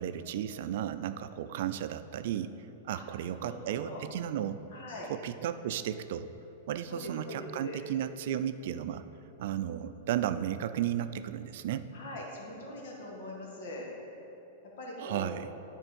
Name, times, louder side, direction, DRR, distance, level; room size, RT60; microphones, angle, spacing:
voice 1, 0.0-2.5 2.8-4.6 5.0-6.3 6.7-9.0 9.4-11.9 15.0-15.5, right 10 dB, 65° right, 11 dB, 0.4 m, -34 dB
voice 2, 3.3-4.0 4.7-5.1 6.9-7.8 11.9-13.9 14.8-15.4, left 1 dB, 65° left, -2 dB, 1.8 m, -42 dB
9.8 x 4.5 x 5.2 m, 3.0 s
hypercardioid pair, 125°, 0 cm